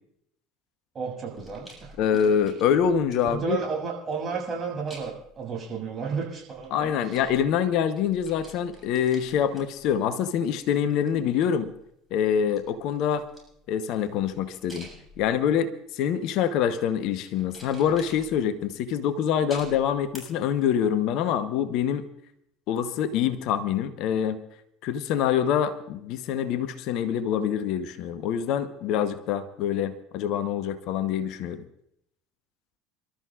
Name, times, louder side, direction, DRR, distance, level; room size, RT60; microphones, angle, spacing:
voice 1, 0.9-1.9 3.3-7.2, right 5 dB, 35° right, -1 dB, 6.6 m, -32 dB
sound 1, 1.3-3.5 4.9-5.4 6.4-7.7 8.0-10.4 10.8-11.9 12.3-15.5 16.2-16.6 17.4-18.7 19.5-20.2 20.6-20.7, equal, 5° right, 7.6 m, -50 dB
voice 2, 2.0-3.6 6.7-11.7 12.1-13.3 13.7-14.9 15.2-22.0 22.7-24.4 24.8-31.6, left 8 dB, 55° left, 12 dB, 0.9 m, -25 dB
28.5 x 13.0 x 2.4 m, 0.74 s
figure-of-eight pair, 65°, 0 cm